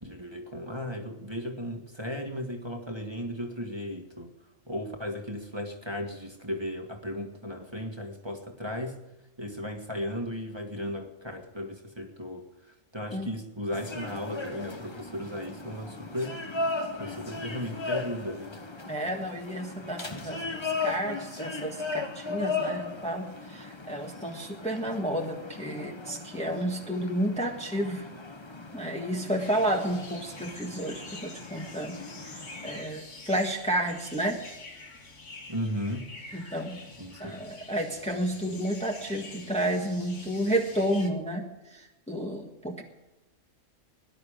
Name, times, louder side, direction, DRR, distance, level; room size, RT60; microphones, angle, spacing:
voice 1, 0.0-4.3 4.7-9.0 9.4-16.4 17.0-18.6 35.5-36.1 37.0-37.4, equal, 20° right, 3 dB, 1.8 m, -36 dB
sound 1, 13.7-32.8, left 3 dB, 25° left, 1.1 m, -37 dB
voice 2, 18.9-28.0 28.7-32.0 32.2-34.4 36.3-36.8 37.2-41.4 41.7-42.8, right 1 dB, 5° left, 1 dB, 1.4 m, -31 dB
sound 2, 29.4-41.1, left 3 dB, 65° left, 2.3 m, -47 dB
18.5 x 11.5 x 5.1 m, 1.0 s
omnidirectional pair, 1.3 m